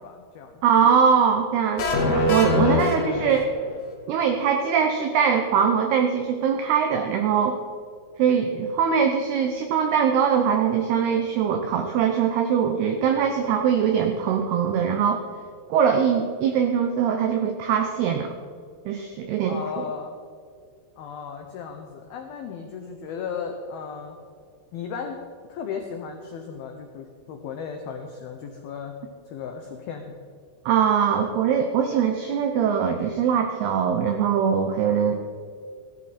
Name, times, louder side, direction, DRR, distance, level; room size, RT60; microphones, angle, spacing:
voice 1, 0.0-0.6 19.5-20.2 21.0-24.2 24.7-25.2 25.5-28.9 29.3-30.2, left 6 dB, 85° left, 4 dB, 2.1 m, -35 dB
voice 2, 0.6-3.5 4.1-7.6 8.2-15.2 15.7-18.3 18.9-19.8 30.7-35.1, right 7 dB, 85° right, 5 dB, 2.3 m, -22 dB
sound 1, 1.8-3.8, left 2 dB, 55° left, 2.1 m, -23 dB
16.5 x 13.5 x 4.2 m, 2.2 s
omnidirectional pair, 5.8 m